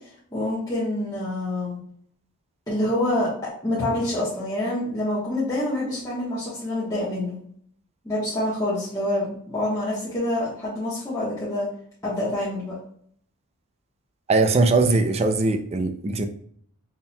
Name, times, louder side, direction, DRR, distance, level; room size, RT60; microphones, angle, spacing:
voice 1, 0.3-1.8 2.7-3.3 3.6-7.3 8.0-11.7 12.0-12.7, left 1 dB, 15° left, -9 dB, 1.2 m, -26 dB
voice 2, 14.3-16.3, right 3 dB, 30° right, 7 dB, 0.4 m, -20 dB
4.3 x 3.6 x 2.2 m, 0.63 s
head